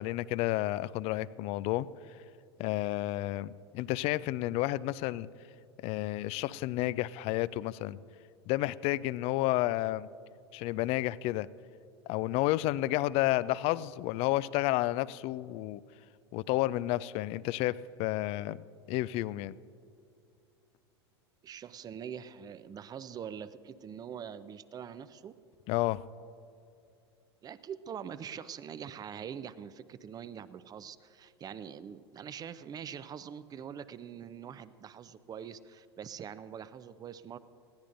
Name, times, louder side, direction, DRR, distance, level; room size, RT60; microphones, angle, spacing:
voice 1, 0.0-1.9 2.6-5.3 5.8-8.0 8.5-10.1 10.5-11.5 12.1-15.8 16.3-19.6 25.7-26.0, left 16 dB, 45° left, 19 dB, 0.4 m, -31 dB
voice 2, 21.4-25.3 27.4-37.4, right 8 dB, 30° right, 15 dB, 0.6 m, -44 dB
20.5 x 16.0 x 2.6 m, 2.5 s
hypercardioid pair, 85°, 14 cm